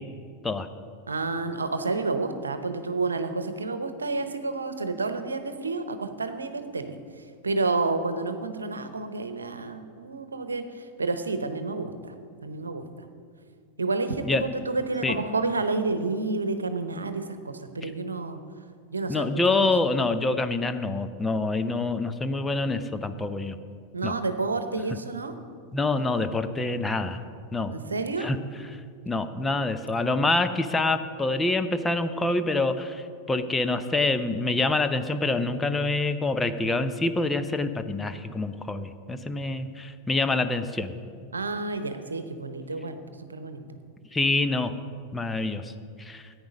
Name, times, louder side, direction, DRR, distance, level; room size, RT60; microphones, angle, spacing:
voice 1, 1.1-12.1 12.4-12.8 13.8-18.4 18.9-19.6 23.9-25.3 27.7-28.3 41.3-43.6, right 3 dB, 85° right, 9 dB, 0.9 m, -30 dB
voice 2, 19.1-23.6 24.0-24.1 25.7-27.2 27.5-27.7 28.2-28.4 29.1-40.9 44.1-44.7 45.1-45.7 46.0-46.3, left 2 dB, 15° left, 9 dB, 0.8 m, -26 dB
14.0 x 9.6 x 5.2 m, 2.2 s
figure-of-eight pair, 90°, 0 cm